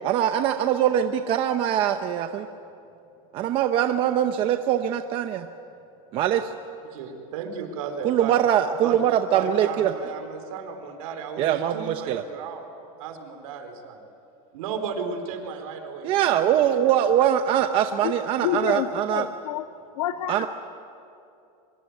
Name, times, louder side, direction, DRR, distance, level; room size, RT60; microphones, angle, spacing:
voice 1, 0.0-2.5 3.3-5.5 6.1-6.5 8.0-9.9 11.4-12.2 16.0-19.2 20.3-20.5, right 10 dB, 30° right, 7 dB, 0.8 m, -22 dB
voice 2, 6.9-8.3 8.8-9.0 9.3-12.6 13.0-14.0 14.5-16.1, right 6 dB, 70° right, 6 dB, 4.1 m, -34 dB
voice 3, 18.0-19.7 20.0-20.5, left 11 dB, 70° left, 9 dB, 1.4 m, -29 dB
24.0 x 23.5 x 9.4 m, 2.6 s
supercardioid pair, 180°, 18 cm